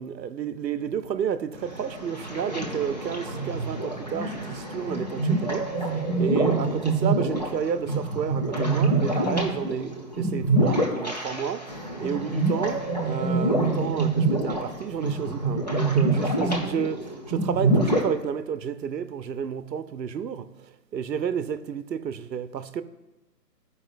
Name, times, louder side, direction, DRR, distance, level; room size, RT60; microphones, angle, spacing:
voice 1, 0.0-22.8, right 8 dB, 80° right, 0.7 m, -31 dB
sound 1, 1.5-18.1, right 2 dB, 25° left, 0.6 m, -26 dB
13.5 x 4.9 x 2.5 m
hypercardioid pair, 165°, 50 cm